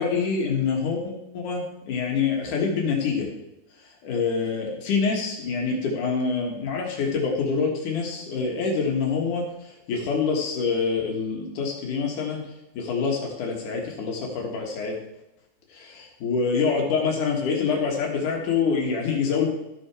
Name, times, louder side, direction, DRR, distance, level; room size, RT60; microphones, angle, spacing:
voice 1, 0.0-3.3 3.8-15.0 15.7-19.5, left 5 dB, 65° left, -1 dB, 2.0 m, -26 dB
13.5 x 6.2 x 4.8 m, 0.89 s
omnidirectional pair, 5.8 m